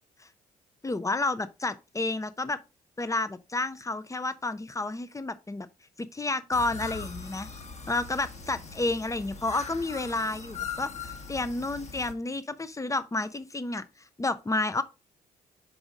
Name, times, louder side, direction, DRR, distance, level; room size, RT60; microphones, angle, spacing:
voice 1, 0.8-2.6 3.0-5.7 6.0-7.5 7.9-13.8 14.2-14.8, left 2 dB, 15° left, 0.7 m, -30 dB
sound 1, 6.5-12.1, left 5 dB, 35° left, 1.4 m, -40 dB
6.2 x 5.0 x 3.7 m
figure-of-eight pair, 45°, 20 cm